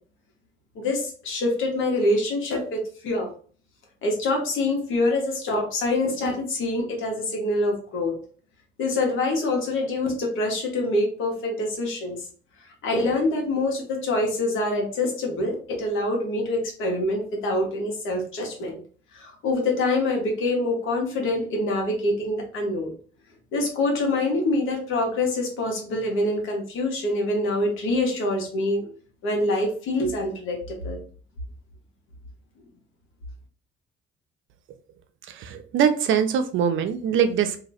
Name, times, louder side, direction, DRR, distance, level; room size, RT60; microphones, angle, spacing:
voice 1, 0.7-3.3 4.0-8.2 8.8-12.2 12.6-18.8 19.1-22.9 23.5-28.9 29.2-31.0, left 2 dB, 85° left, 1 dB, 1.4 m, -25 dB
voice 2, 35.3-37.6, right 8 dB, 75° right, 9 dB, 0.6 m, -23 dB
2.9 x 2.8 x 4.2 m, 0.43 s
cardioid pair, 90°, 20 cm